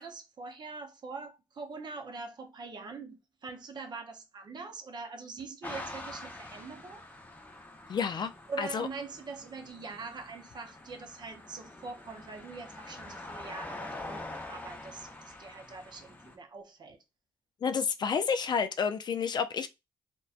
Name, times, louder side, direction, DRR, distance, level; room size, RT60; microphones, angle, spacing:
voice 1, 0.0-7.1 8.5-17.0, right 4 dB, 50° right, 0.6 m, -43 dB
sound 1, 5.6-16.4, left 2 dB, 20° left, 0.7 m, -45 dB
voice 2, 7.9-8.3 8.6-8.9 17.6-19.7, left 6 dB, 50° left, 0.3 m, -30 dB
2.5 x 2.1 x 2.4 m
cardioid pair, 75°, 10 cm